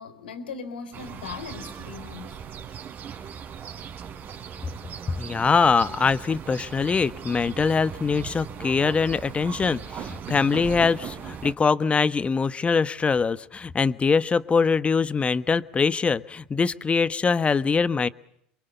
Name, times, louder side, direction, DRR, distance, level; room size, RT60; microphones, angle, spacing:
voice 1, 0.0-2.4, left 5 dB, 90° left, 9 dB, 4.0 m, -38 dB
sound 1, 0.9-11.5, right 8 dB, 45° right, 3.7 m, -38 dB
voice 2, 5.2-18.1, left 5 dB, 25° left, 14 dB, 1.2 m, -23 dB
28.5 x 23.5 x 6.9 m, 0.72 s
hypercardioid pair, 85°, 5 cm